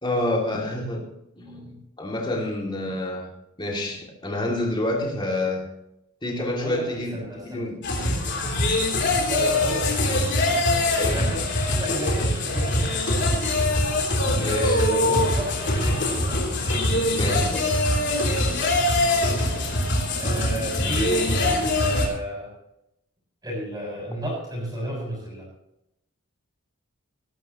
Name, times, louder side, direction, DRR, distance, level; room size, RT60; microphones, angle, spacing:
voice 1, 0.0-1.0 1.4-3.3 3.6-5.7 6.2-7.8 11.0-11.2 14.4-14.8 16.9-17.9 21.0-21.3, left 1 dB, 20° left, -1 dB, 2.8 m, -28 dB
voice 2, 6.4-7.6 9.2-10.5 11.0-13.1 14.2-16.9 19.1-19.7 20.1-22.5 23.4-25.5, right 1 dB, 15° right, -4 dB, 6.4 m, -32 dB
sound 1, 7.8-22.1, left 1 dB, 50° left, 3.5 m, -23 dB
19.5 x 12.0 x 3.1 m, 0.82 s
head